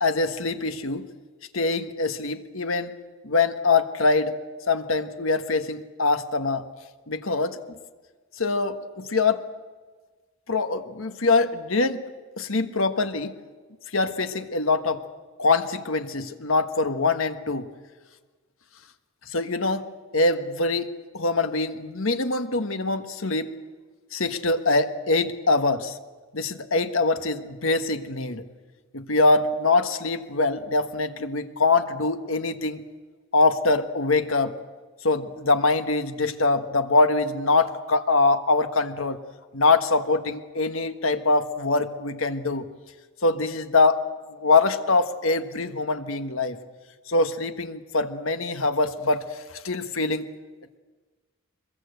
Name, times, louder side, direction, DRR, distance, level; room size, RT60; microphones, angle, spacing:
voice 1, 0.0-1.1 1.5-2.9 3.2-4.3 4.7-6.7 7.1-7.6 8.4-9.4 10.5-12.0 12.4-13.4 13.9-15.0 15.4-17.7 19.3-19.8 20.1-23.5 24.1-26.0 26.3-28.4 28.9-32.8 33.3-34.5 35.0-39.2 39.5-42.7 43.2-46.6 47.1-50.3, left 3 dB, 70° left, 9 dB, 1.5 m, -23 dB
24.0 x 22.0 x 8.1 m, 1.4 s
head